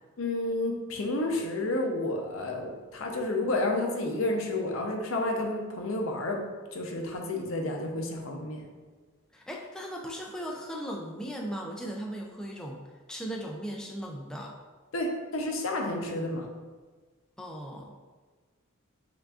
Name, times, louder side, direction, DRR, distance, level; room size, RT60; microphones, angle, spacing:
voice 1, 0.2-6.4 6.7-8.6 14.9-16.5, left 2 dB, 70° left, 1 dB, 0.6 m, -30 dB
voice 2, 9.3-12.8 13.1-14.5 17.4-17.9, equal, 5° left, -2 dB, 0.3 m, -37 dB
5.8 x 2.5 x 2.4 m, 1.4 s
head